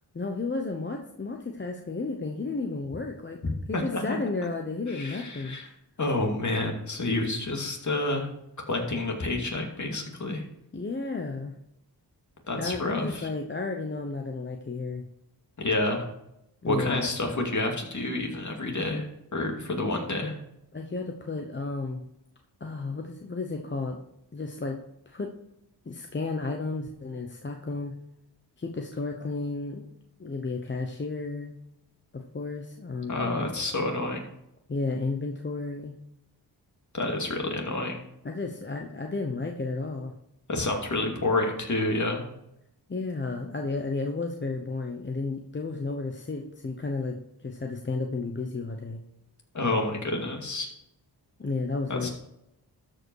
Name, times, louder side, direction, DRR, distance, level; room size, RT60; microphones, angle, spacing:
voice 1, 0.1-3.4 3.7-5.6 10.7-11.5 12.6-15.1 16.6-17.1 20.7-22.0 22.6-24.0 24.3-24.8 25.1-25.3 25.9-27.9 28.6-29.9 30.2-31.5 32.1-33.4 34.7-36.0 38.2-40.1 42.9-49.0 51.4-52.1, left 3 dB, 30° left, 3 dB, 0.9 m, -32 dB
voice 2, 3.4-4.2 4.9-5.7 6.0-8.3 8.7-10.4 12.5-13.3 15.6-16.1 16.7-19.0 19.3-20.4 33.1-34.2 36.9-38.0 40.5-42.2 49.5-50.7 51.9-52.1, left 2 dB, 45° left, 1 dB, 2.5 m, -29 dB
13.0 x 5.3 x 4.8 m, 0.82 s
cardioid pair, 80°, 41 cm